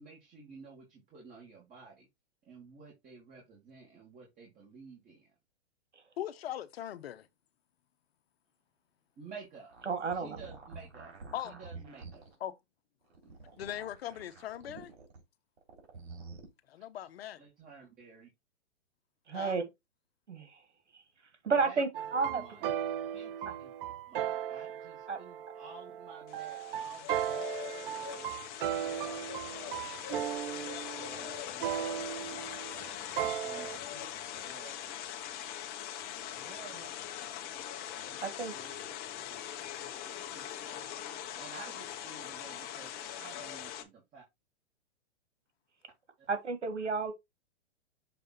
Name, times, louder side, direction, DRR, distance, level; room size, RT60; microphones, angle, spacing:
voice 1, 0.0-2.1 2.5-5.3 9.2-9.7 10.1-11.1 11.4-12.3 17.4-18.3 21.5-22.8 23.1-23.7 24.1-28.3 28.8-29.4 29.7-32.4 32.8-34.8 36.3-36.9 38.0-38.9 39.3-39.4 39.8-42.9 43.2-44.2, right 4 dB, 25° right, 2.5 m, -53 dB
voice 2, 6.2-7.3 11.3-11.5 12.4-12.5 13.6-14.9 16.7-17.4 19.3-19.6, left 11 dB, 60° left, 1.0 m, -40 dB
sound 1, 9.5-12.3 13.0-15.2 15.6-16.4, right 4 dB, 65° right, 3.5 m, -49 dB
voice 3, 9.9-10.4 19.3-19.6 20.3-20.5 21.4-22.4 25.1-25.2 38.2-38.5 46.3-47.1, right 4 dB, 90° right, 1.7 m, -31 dB
sound 2, 21.9-33.8, right 10 dB, 50° right, 0.7 m, -37 dB
sound 3, 26.3-43.8, left 11 dB, 30° left, 1.0 m, -42 dB
6.9 x 3.5 x 4.1 m
hypercardioid pair, 130°, 34 cm